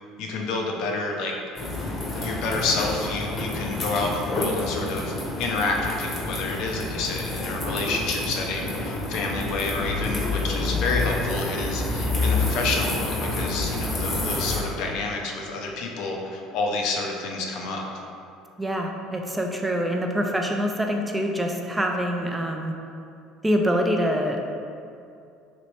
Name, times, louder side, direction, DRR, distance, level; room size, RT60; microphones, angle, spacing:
voice 1, 0.2-1.3 2.2-5.1 5.4-17.9, left 3 dB, 65° left, 0 dB, 0.4 m, -29 dB
sound 1, 1.6-14.6, left 2 dB, 35° left, 0.8 m, -28 dB
voice 2, 18.6-22.7 23.4-24.5, equal, 15° right, 2 dB, 0.4 m, -25 dB
3.0 x 2.9 x 2.9 m, 2.5 s
hypercardioid pair, 75°, 0 cm